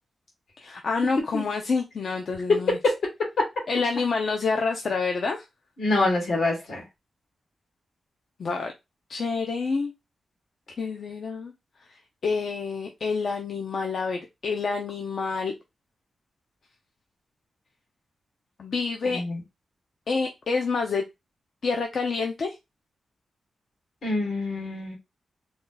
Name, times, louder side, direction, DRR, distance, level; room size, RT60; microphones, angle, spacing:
voice 1, 0.6-2.8 3.7-5.4 8.4-8.7 9.1-9.9 10.8-11.5 11.9-15.5 18.6-19.2 20.1-21.0 21.6-22.6, left 4 dB, 55° left, 0.5 m, -28 dB
voice 2, 2.5-3.0 5.8-6.8 19.1-19.4 24.0-25.0, left 2 dB, 75° left, 2.1 m, -25 dB
3.8 x 2.3 x 3.9 m
wide cardioid pair, 165°, 0 cm